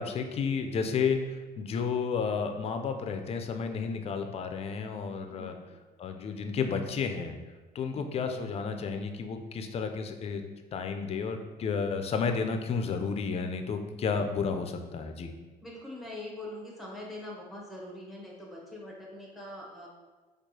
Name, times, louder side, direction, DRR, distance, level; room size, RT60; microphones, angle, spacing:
voice 1, 0.0-5.5 6.0-7.3 7.7-10.4 10.7-15.3, left 5 dB, 35° left, 6 dB, 0.4 m, -32 dB
voice 2, 5.3-5.6 7.9-8.2 15.6-19.9, left 1 dB, ahead, -3 dB, 0.9 m, -43 dB
4.5 x 2.3 x 2.7 m, 1.3 s
cardioid pair, 110°, 17 cm